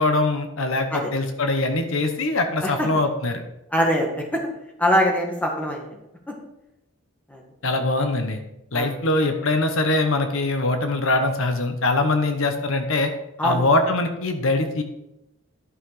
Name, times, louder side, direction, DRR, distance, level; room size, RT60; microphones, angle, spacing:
voice 1, 0.0-3.4 7.6-8.4 8.7-13.1 13.4-14.8, left 2 dB, 60° left, 6 dB, 0.9 m, -22 dB
voice 2, 3.7-4.4 4.8-5.9 7.3-7.4 8.7-8.9 13.4-13.6, equal, 5° left, 0 dB, 1.6 m, -22 dB
11.5 x 5.8 x 4.9 m, 0.89 s
head